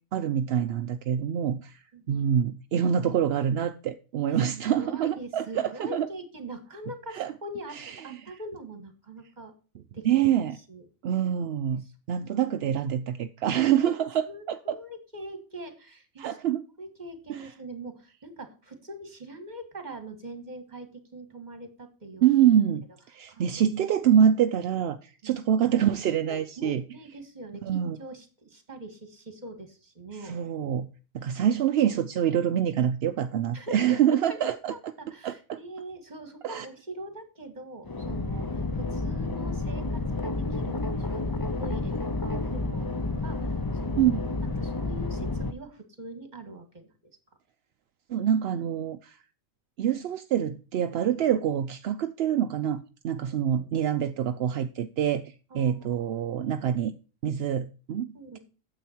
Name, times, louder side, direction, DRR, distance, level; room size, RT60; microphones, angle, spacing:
voice 1, 0.1-6.1 7.1-7.3 7.7-8.2 10.0-10.6 11.0-14.8 16.2-16.6 17.3-17.5 22.2-26.8 27.6-28.0 30.2-30.9 31.1-34.7 35.2-35.6 36.4-36.7 44.0-44.3 48.1-49.2 49.8-56.9 57.2-58.4, right 9 dB, 60° right, 0.7 m, -26 dB
voice 2, 1.9-2.2 4.3-9.5 9.9-10.8 11.8-12.4 14.3-16.4 16.8-22.2 23.3-23.5 25.2-25.4 26.2-30.3 33.5-34.4 34.7-42.9 43.2-44.2 44.6-47.1 53.2-53.7 55.5-56.1 58.1-58.4, right 1 dB, 35° right, 1.9 m, -43 dB
sound 1, 37.8-45.5, left 2 dB, 25° left, 0.5 m, -30 dB
9.2 x 7.8 x 4.4 m
omnidirectional pair, 1.4 m